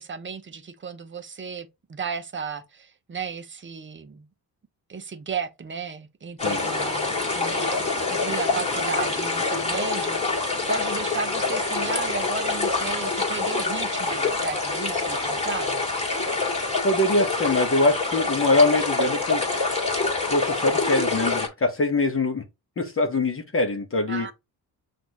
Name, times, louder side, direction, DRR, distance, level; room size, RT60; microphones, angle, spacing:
voice 1, 0.0-4.3 4.9-15.8 24.1-24.3, right 5 dB, 30° right, 0.7 m, -34 dB
sound 1, 6.4-21.5, left 3 dB, 15° left, 2.0 m, -26 dB
voice 2, 16.8-19.4 20.3-22.4 22.8-24.3, left 2 dB, 35° left, 1.0 m, -23 dB
5.9 x 2.6 x 2.9 m
cardioid pair, 85°, 39 cm